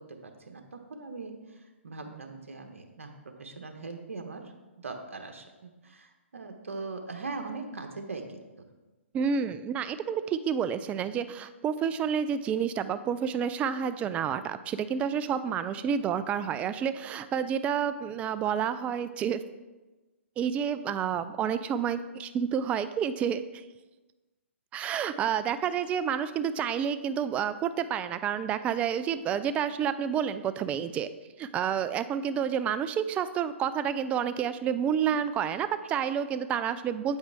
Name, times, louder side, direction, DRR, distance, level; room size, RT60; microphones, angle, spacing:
voice 1, 0.2-1.3 1.8-3.1 3.4-4.4 4.8-8.2 8.6-8.7, right 3 dB, 85° right, 4 dB, 1.1 m, -40 dB
voice 2, 9.1-19.4 20.4-23.4 24.7-31.1 31.4-37.2, right 8 dB, 20° right, 12 dB, 0.4 m, -29 dB
8.5 x 8.1 x 3.5 m, 1.2 s
hypercardioid pair, 135°, 7 cm